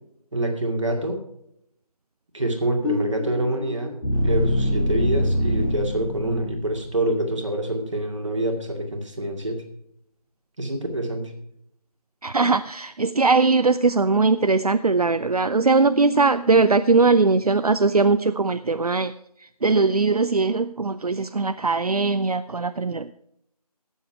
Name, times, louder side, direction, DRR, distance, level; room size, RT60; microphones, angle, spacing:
voice 1, 0.3-1.2 2.3-3.9 4.2-9.6 10.6-11.3, right 1 dB, 50° right, 2 dB, 2.3 m, -26 dB
sound 1, 2.8-6.9, equal, 55° left, 2.8 m, -24 dB
voice 2, 12.2-19.1 19.6-23.1, right 3 dB, 70° right, 12 dB, 0.5 m, -20 dB
16.0 x 7.3 x 4.7 m, 0.74 s
figure-of-eight pair, 165°, 20 cm